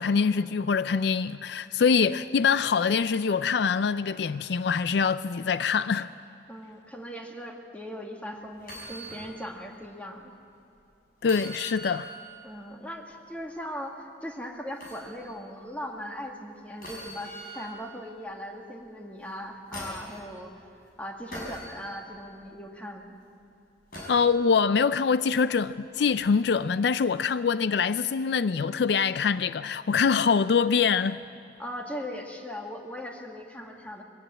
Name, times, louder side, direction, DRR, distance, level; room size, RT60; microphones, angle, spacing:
voice 1, 0.0-6.1 11.2-12.1 24.1-31.2, left 5 dB, 65° left, 0.4 m, -24 dB
voice 2, 6.5-10.3 12.4-20.5 21.0-23.1 31.6-34.0, equal, 10° left, 2.0 m, -39 dB
sound 1, 8.6-9.3 9.7-9.8 11.2-12.2 14.8-15.1 16.8-17.8 19.2-20.1 21.3-21.7 23.9-24.3 26.1-26.2, equal, 50° left, 6.1 m, -41 dB
22.0 x 17.0 x 8.9 m
head